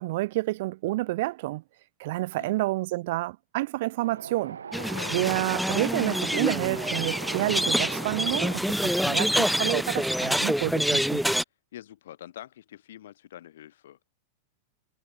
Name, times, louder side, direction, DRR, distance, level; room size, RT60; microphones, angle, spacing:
voice 1, 0.0-1.6 2.0-4.6 5.1-11.2, right 19 dB, 50° right, 1.3 m, -29 dB
voice 2, 2.2-2.6 4.9-5.1 11.7-14.0, left 12 dB, 60° left, 1.7 m, -45 dB
Wind, 4.0-8.6, right 7 dB, 70° right, 2.9 m, -40 dB
sound 1, 4.7-11.4, equal, ahead, 0.6 m, -26 dB
figure-of-eight pair, 90°, 0 cm